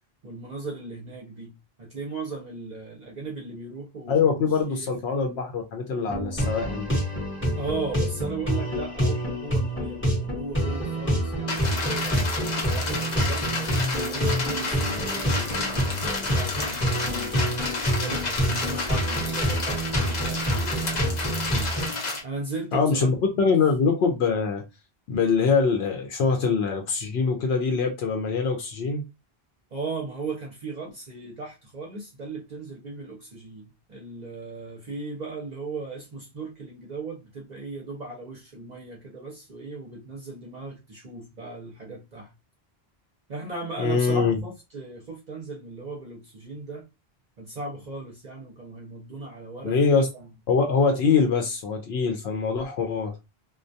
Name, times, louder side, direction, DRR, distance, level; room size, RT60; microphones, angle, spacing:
voice 1, 0.2-1.5 1.8-4.9 7.5-12.3 12.6-17.4 17.9-21.8 22.2-23.2 29.7-42.3 43.3-46.8 47.4-50.3, right 3 dB, 50° right, 0.6 m, -37 dB
voice 2, 4.1-7.0 22.7-24.6 25.1-29.0 43.8-44.4 49.6-50.1 50.5-53.1, left 5 dB, 85° left, 0.8 m, -23 dB
sound 1, 6.1-21.9, equal, 10° left, 0.9 m, -27 dB
sound 2, 11.5-22.2, left 3 dB, 50° left, 0.8 m, -30 dB
2.2 x 2.2 x 2.6 m
omnidirectional pair, 1.0 m